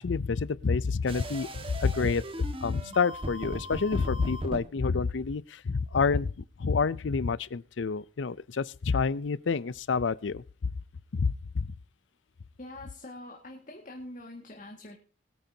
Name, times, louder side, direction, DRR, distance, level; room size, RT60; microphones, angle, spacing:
voice 1, 0.0-10.7 11.1-11.7, left 5 dB, 75° left, 0.5 m, -28 dB
sound 1, 1.1-4.6, equal, 30° right, 1.6 m, -38 dB
voice 2, 12.6-15.0, left 1 dB, 45° left, 1.9 m, -44 dB
21.5 x 9.2 x 2.8 m
head